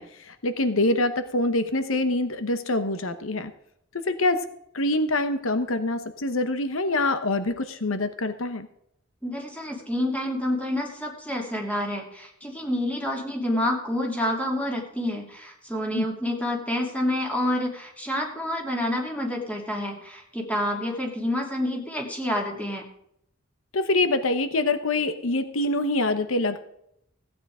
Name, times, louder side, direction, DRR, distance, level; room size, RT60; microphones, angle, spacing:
voice 1, 0.0-3.5 3.9-4.5 4.7-8.7 15.9-16.1 23.7-26.6, left 2 dB, 80° left, 11 dB, 1.0 m, -25 dB
voice 2, 9.2-22.8, left 1 dB, 5° left, 1 dB, 2.9 m, -28 dB
16.0 x 9.1 x 4.9 m, 0.74 s
head